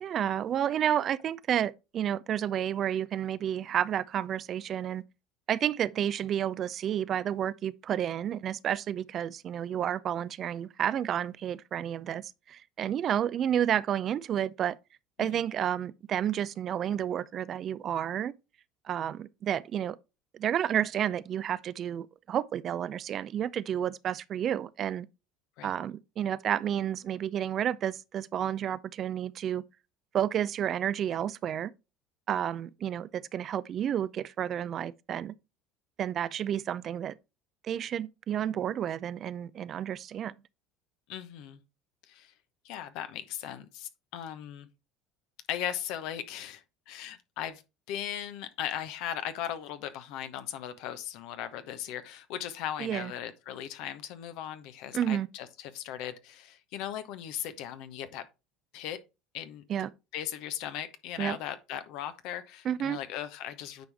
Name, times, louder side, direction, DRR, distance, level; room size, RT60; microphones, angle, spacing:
voice 1, 0.0-5.0 5.5-14.8 15.2-18.3 18.9-20.0 20.3-25.1 25.6-29.6 30.1-31.7 32.3-35.3 36.0-37.1 37.6-40.3 52.8-53.1 54.9-55.3 59.7-59.9 61.2-61.4 62.6-63.0, right 10 dB, 45° right, 0.5 m, -31 dB
voice 2, 41.1-41.6 42.1-42.3 42.6-44.7 45.5-47.6 47.9-58.3 58.7-59.0 59.3-63.9, left 10 dB, 65° left, 1.0 m, -38 dB
9.3 x 4.7 x 3.4 m
hypercardioid pair, 70°, 0 cm